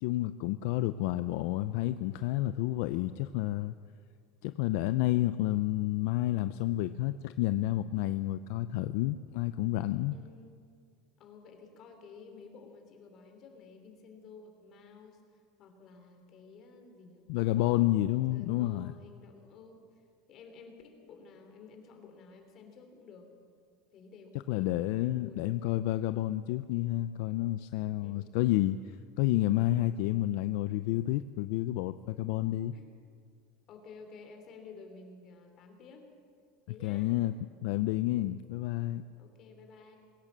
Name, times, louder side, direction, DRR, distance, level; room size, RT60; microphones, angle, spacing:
voice 1, 0.0-3.7 4.4-10.2 17.3-18.9 24.5-32.7 36.8-37.3 37.6-39.0, left 15 dB, 60° left, 12 dB, 0.5 m, -30 dB
voice 2, 10.1-10.6 11.2-19.8 20.3-23.3 23.9-24.7 25.0-25.5 27.7-28.4 32.6-32.9 33.7-36.1 36.7-37.1 39.2-40.0, left 4 dB, 30° left, 4 dB, 3.2 m, -52 dB
21.5 x 17.5 x 7.5 m, 2.2 s
supercardioid pair, 170°, 0 cm